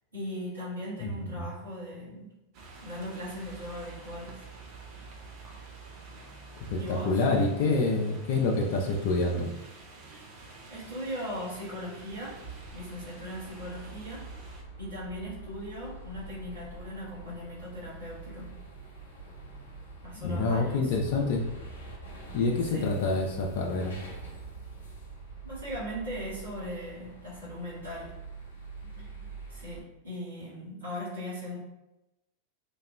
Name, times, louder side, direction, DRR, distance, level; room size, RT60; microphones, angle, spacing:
voice 1, 0.1-2.3 2.8-4.4 6.8-7.2 10.7-12.4 12.7-14.3 14.8-18.5 20.0-20.9 22.7-23.0 25.4-28.1 29.0-31.6, equal, 70° right, -10 dB, 1.3 m, -39 dB
voice 2, 1.0-1.4 6.7-9.5 20.1-21.4 22.3-24.0, left 3 dB, 50° left, 0 dB, 0.3 m, -27 dB
sound 1, 2.5-14.6, right 3 dB, 40° right, 0.4 m, -48 dB
sound 2, 12.0-29.8, right 3 dB, 70° left, 0.7 m, -45 dB
2.7 x 2.1 x 2.2 m, 0.96 s
figure-of-eight pair, 90°, 0 cm